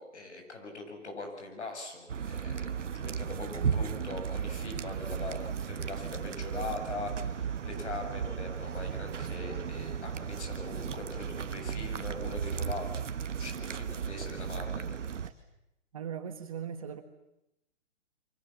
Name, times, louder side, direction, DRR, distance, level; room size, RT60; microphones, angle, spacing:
voice 1, 0.0-13.0 13.4-15.0, left 3 dB, 65° left, 5 dB, 7.7 m, -41 dB
sound 1, 2.1-15.3, right 7 dB, 80° right, 1.4 m, -35 dB
sound 2, 5.1-15.3, right 5 dB, 10° right, 6.4 m, -58 dB
voice 2, 15.9-17.0, right 8 dB, 30° right, 7 dB, 1.4 m, -38 dB
28.0 x 24.0 x 7.4 m, 0.84 s
hypercardioid pair, 175°, 36 cm